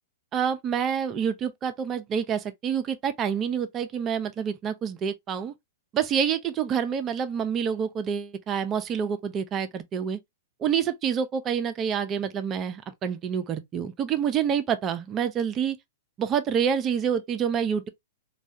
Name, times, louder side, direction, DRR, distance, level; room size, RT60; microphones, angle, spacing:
voice 1, 0.3-5.5 5.9-10.2 10.6-15.8 16.2-17.9, right 7 dB, 30° right, 0.5 m, -27 dB
3.2 x 2.3 x 2.7 m
hypercardioid pair, 115°, 0 cm